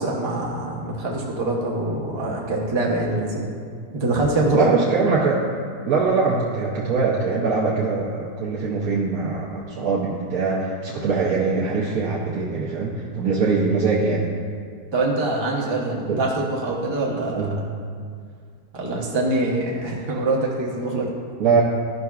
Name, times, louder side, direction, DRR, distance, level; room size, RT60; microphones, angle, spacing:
voice 1, 0.0-3.5 3.9-4.7 14.9-17.5 18.7-21.0, right 2 dB, 25° right, -4 dB, 0.7 m, -24 dB
voice 2, 4.5-5.4 5.9-14.2 16.1-16.2 17.3-17.5 21.4-21.6, right 4 dB, 65° right, -6 dB, 1.2 m, -22 dB
12.5 x 5.6 x 2.3 m, 2.1 s
omnidirectional pair, 1.7 m